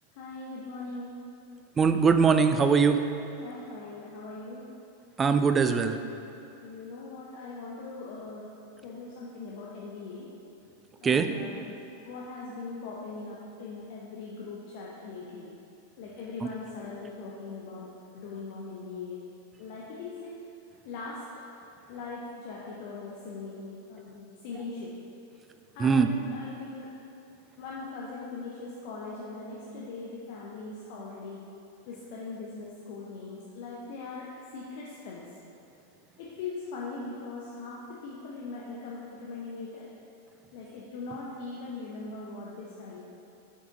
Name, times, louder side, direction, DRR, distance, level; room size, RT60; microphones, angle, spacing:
voice 1, 0.1-1.2 3.4-4.7 6.6-8.5 8.8-10.3 11.0-11.7 12.0-15.5 16.0-19.2 19.6-20.4 20.8-21.4 21.9-24.9 25.7-26.9 27.6-31.4 31.9-35.3 36.2-39.9 40.5-43.0, left 3 dB, 50° left, -5 dB, 0.7 m, -40 dB
voice 2, 1.8-3.0 5.2-6.0 11.0-11.3 16.4-16.5 25.8-26.1, right 5 dB, 20° right, 8 dB, 0.3 m, -21 dB
6.9 x 4.8 x 3.9 m, 2.7 s
figure-of-eight pair, 90°, 0 cm